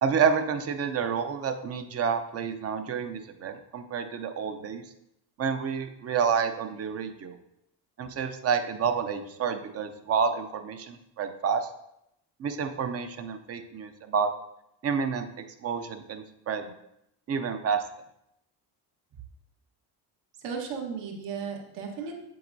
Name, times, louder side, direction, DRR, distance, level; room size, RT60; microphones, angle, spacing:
voice 1, 0.0-4.8 5.4-7.3 8.0-11.7 12.4-14.3 14.8-15.3 15.6-16.7 17.3-17.8, right 6 dB, 35° right, 8 dB, 0.5 m, -29 dB
voice 2, 20.4-22.1, right 6 dB, 75° right, 1 dB, 1.5 m, -35 dB
8.0 x 7.6 x 2.7 m, 0.80 s
cardioid pair, 155°, 42 cm